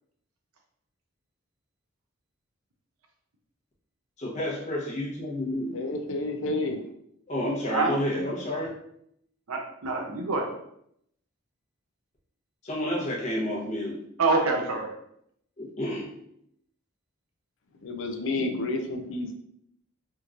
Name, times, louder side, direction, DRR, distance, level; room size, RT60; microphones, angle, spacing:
voice 1, 4.2-5.8 7.3-8.7 12.6-14.0 15.6-16.1, left 1 dB, 35° left, -3 dB, 0.9 m, -30 dB
voice 2, 5.7-6.8 17.8-19.3, left 2 dB, 60° left, 4 dB, 0.5 m, -30 dB
voice 3, 9.5-10.6 14.2-14.9, right 3 dB, 85° right, 2 dB, 0.7 m, -26 dB
3.6 x 2.9 x 2.5 m, 0.72 s
head